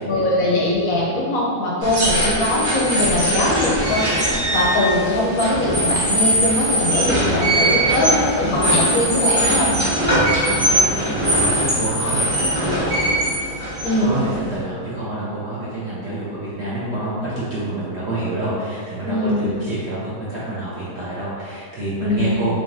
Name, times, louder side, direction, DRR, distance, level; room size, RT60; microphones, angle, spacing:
voice 1, 0.0-9.7 13.8-14.2 19.0-19.6 22.0-22.5, left 1 dB, 70° left, -4 dB, 0.9 m, -21 dB
sound 1, 1.8-14.5, right 1 dB, 30° right, 1.5 m, -21 dB
voice 2, 7.5-8.1 8.7-8.9 9.4-13.0 14.0-22.5, right 2 dB, 60° right, -9 dB, 0.7 m, -28 dB
3.8 x 3.2 x 2.5 m, 2.2 s
omnidirectional pair, 1.8 m